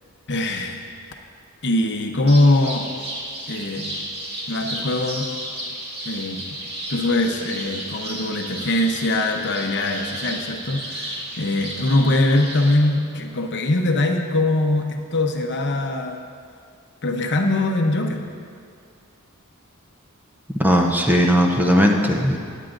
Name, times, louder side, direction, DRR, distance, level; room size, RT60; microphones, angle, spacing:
voice 1, 0.3-0.8 1.6-2.9 3.5-4.0 4.5-5.3 6.1-6.4 6.9-16.2 17.0-18.2, left 2 dB, 55° left, 3 dB, 0.8 m, -22 dB
sound 1, 2.3-12.8, right 1 dB, 50° right, 2.1 m, -33 dB
voice 2, 20.6-22.4, equal, 10° right, 1 dB, 0.7 m, -17 dB
18.5 x 9.1 x 2.6 m, 2.3 s
head